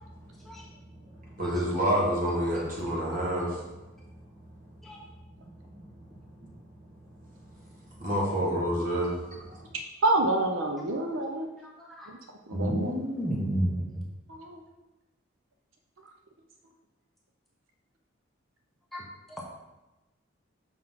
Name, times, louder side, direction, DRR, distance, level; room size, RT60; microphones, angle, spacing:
voice 1, 1.0-3.6 5.6-5.8 6.4-6.5 8.0-9.6, equal, 40° right, -4 dB, 1.9 m, -29 dB
voice 2, 10.0-11.5 12.1-12.2 12.5-13.1 14.3-14.6, right 2 dB, 75° right, 4 dB, 0.6 m, -28 dB
voice 3, 11.8-12.1 12.5-13.9 18.9-19.0, equal, ahead, -4 dB, 0.9 m, -31 dB
6.1 x 3.9 x 5.7 m, 1.0 s
head